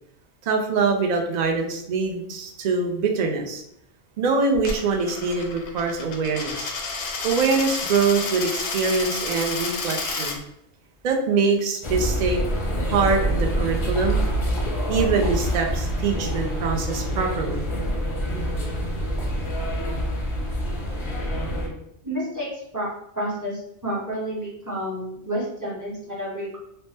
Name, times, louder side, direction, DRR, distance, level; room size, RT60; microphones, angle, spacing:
voice 1, 0.4-3.6 4.2-6.7 7.2-10.4 11.0-12.4 12.9-14.2 14.9-17.6, right 4 dB, 55° right, 2 dB, 0.5 m, -24 dB
Coin (dropping), 4.5-10.4, left 4 dB, 90° left, 0.9 m, -30 dB
sound 1, 11.8-21.7, equal, 35° left, 0.5 m, -26 dB
voice 2, 22.0-22.5 22.7-22.9 23.1-26.6, equal, 20° right, -6 dB, 0.7 m, -30 dB
2.7 x 2.1 x 3.2 m, 0.75 s
omnidirectional pair, 1.1 m